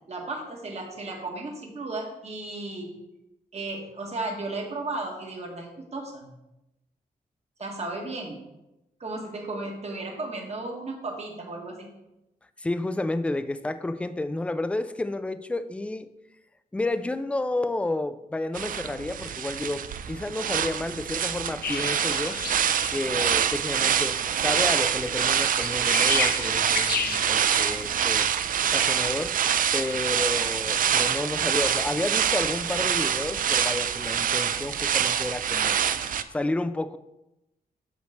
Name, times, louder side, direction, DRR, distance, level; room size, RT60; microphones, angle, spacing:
voice 1, 0.1-2.9 3.5-6.3 7.6-8.4 9.0-11.9, right 2 dB, 45° right, 1 dB, 1.5 m, -34 dB
voice 2, 12.6-16.1 16.7-22.4 22.9-28.3 28.7-29.4 29.7-35.8 36.3-37.0, left 2 dB, 10° left, 12 dB, 0.3 m, -31 dB
sound 1, 18.5-36.2, right 8 dB, 60° right, 0.4 m, -25 dB
sound 2, 21.6-27.9, left 6 dB, 75° left, 0.7 m, -33 dB
8.2 x 3.2 x 6.4 m, 0.93 s
wide cardioid pair, 130°, 16 cm